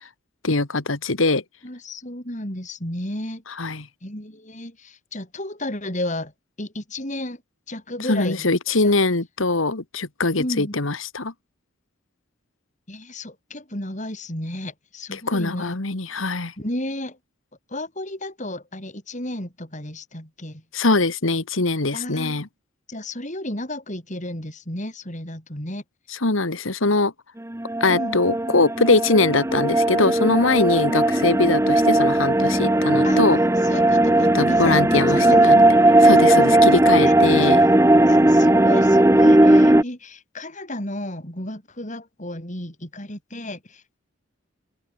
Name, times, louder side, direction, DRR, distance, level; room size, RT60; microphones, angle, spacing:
voice 1, 0.4-1.4 3.6-3.9 8.1-11.3 15.1-16.5 20.7-22.5 26.1-27.1 27.8-33.4 34.3-35.7 36.0-37.6, left 3 dB, 70° left, 1.8 m, -22 dB
voice 2, 1.6-3.4 4.0-6.3 6.6-7.4 7.7-8.5 8.8-8.9 10.4-10.8 12.9-15.8 16.6-17.2 17.7-20.6 21.9-22.4 22.9-25.8 27.9-28.2 30.7-31.1 33.0-33.2 33.6-35.6 36.0-36.6 37.0-37.5 38.0-43.8, left 1 dB, 35° left, 6.6 m, -33 dB
sound 1, 27.5-39.8, right 1 dB, 15° right, 0.8 m, -17 dB
open air
head